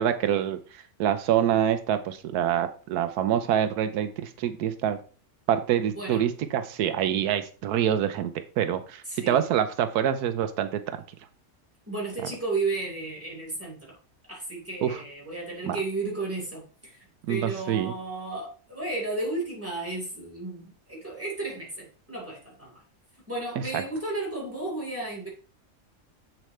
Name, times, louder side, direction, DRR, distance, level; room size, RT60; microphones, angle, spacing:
voice 1, 0.0-5.0 5.5-8.3 8.6-11.0 14.8-15.0 15.7-15.8 17.3-17.9 23.7-23.8, right 10 dB, 85° right, 1.2 m, -26 dB
voice 2, 9.1-9.5 11.9-14.0 14.3-22.8 23.3-25.3, right 2 dB, 10° right, 4.2 m, -33 dB
7.9 x 7.4 x 3.2 m
omnidirectional pair, 1.6 m